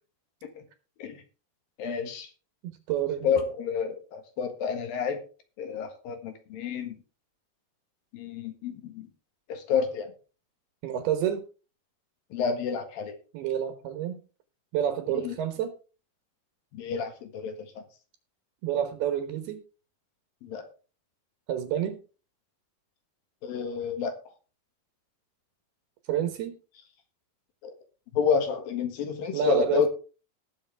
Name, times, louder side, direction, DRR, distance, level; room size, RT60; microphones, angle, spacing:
voice 1, 1.8-2.3 3.2-5.2 5.6-7.0 8.1-9.1 9.5-10.1 12.3-13.2 15.2-15.3 16.7-17.6 20.4-20.6 23.4-24.2 28.1-29.9, left 6 dB, 70° left, 6 dB, 3.2 m, -29 dB
voice 2, 2.6-3.3 10.8-11.5 13.3-14.2 14.7-15.7 18.6-19.6 21.5-22.0 26.1-26.6 29.3-29.9, right 9 dB, 80° right, 7 dB, 3.2 m, -28 dB
19.5 x 7.0 x 3.4 m, 0.35 s
omnidirectional pair, 4.5 m